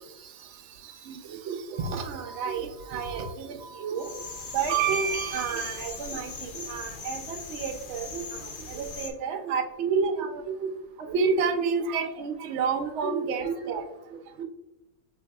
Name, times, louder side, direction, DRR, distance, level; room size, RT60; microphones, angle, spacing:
voice 1, 1.1-4.1 4.5-8.2 8.7-10.3 10.6-10.7 11.1-13.8 14.4-14.5, right 5 dB, 70° right, 5 dB, 0.7 m, -29 dB
sound 1, 4.0-9.1, left 4 dB, 80° left, 0.4 m, -39 dB
5.4 x 3.5 x 2.3 m, 0.89 s
omnidirectional pair, 1.7 m